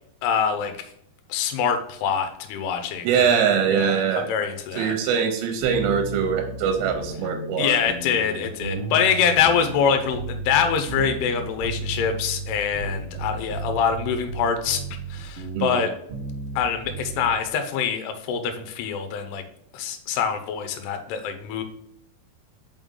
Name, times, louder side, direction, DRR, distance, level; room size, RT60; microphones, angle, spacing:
voice 1, 0.2-0.9 1.3-3.3 3.7-5.0 7.6-14.8 15.1-15.9 16.6-19.4 19.7-21.6, left 7 dB, 80° left, 7 dB, 2.6 m, -24 dB
voice 2, 3.0-4.3 4.8-7.8 15.5-15.8, right 7 dB, 85° right, 4 dB, 2.9 m, -22 dB
sound 1, 5.6-17.4, right 3 dB, 55° right, 1.6 m, -34 dB
5.5 x 5.4 x 3.7 m, 0.73 s
omnidirectional pair, 4.9 m